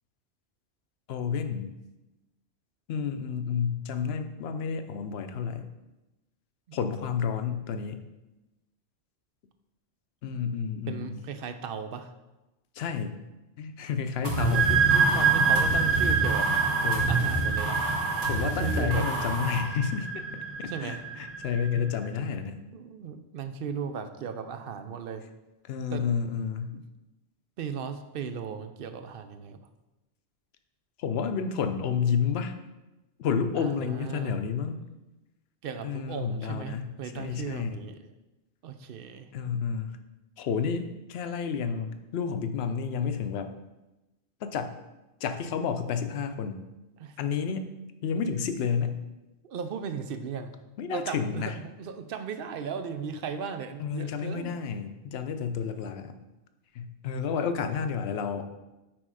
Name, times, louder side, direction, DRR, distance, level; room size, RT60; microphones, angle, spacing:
voice 1, 1.1-1.7 2.9-5.7 6.7-8.0 10.2-11.2 12.7-13.1 13.6-14.8 16.8-17.4 18.3-20.2 20.6-22.6 25.6-26.8 31.0-32.5 33.2-34.8 35.8-37.8 39.3-40.0 40.4-43.5 44.4-44.7 45.2-46.6 47.2-47.7 48.0-49.0 50.8-51.5 53.8-56.2 56.7-58.5, left 6 dB, 70° left, 8 dB, 0.8 m, -30 dB
voice 2, 10.9-12.1 14.2-17.9 18.4-19.0 20.7-21.0 21.7-21.9 22.7-25.2 25.9-26.0 26.7-26.8 27.6-29.7 33.6-34.4 35.6-38.0 38.6-39.3 47.0-47.1 49.4-50.5 50.9-54.6 55.3-55.4 57.3-57.4, right 6 dB, 65° right, 9 dB, 0.7 m, -36 dB
sound 1, 14.2-19.6, right 2 dB, 90° right, 2.2 m, -30 dB
sound 2, 14.3-21.8, right 5 dB, 15° right, 0.5 m, -26 dB
6.2 x 4.4 x 4.8 m, 1.0 s
omnidirectional pair, 1.1 m